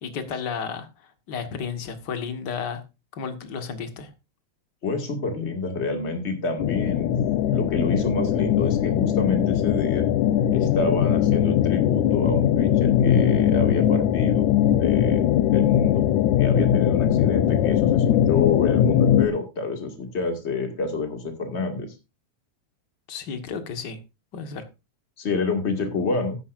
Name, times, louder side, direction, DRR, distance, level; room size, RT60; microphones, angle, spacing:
voice 1, 0.0-2.8 3.1-4.1 23.1-24.0 24.3-24.7, left 6 dB, 45° left, 7 dB, 1.9 m, -33 dB
voice 2, 4.8-7.1 7.5-10.1 10.5-14.5 14.8-15.2 15.5-16.0 16.4-21.9 25.2-26.4, left 3 dB, 25° left, 4 dB, 2.1 m, -28 dB
sound 1, 6.6-19.3, left 10 dB, 90° left, 2.1 m, -20 dB
15.0 x 9.9 x 2.6 m, 0.26 s
omnidirectional pair, 3.3 m